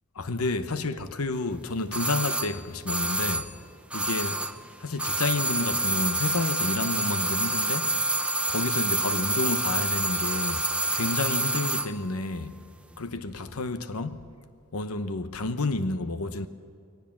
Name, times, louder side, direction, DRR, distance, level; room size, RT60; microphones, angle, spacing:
voice 1, 0.2-3.5 3.9-4.4 4.8-7.9 8.5-12.6 13.0-14.2 14.7-16.5, left 3 dB, 85° left, 0.9 m, -30 dB
sound 1, 1.9-4.7 4.9-11.9 12.2-12.3, right 2 dB, 5° right, 0.6 m, -27 dB
21.0 x 19.0 x 7.3 m
head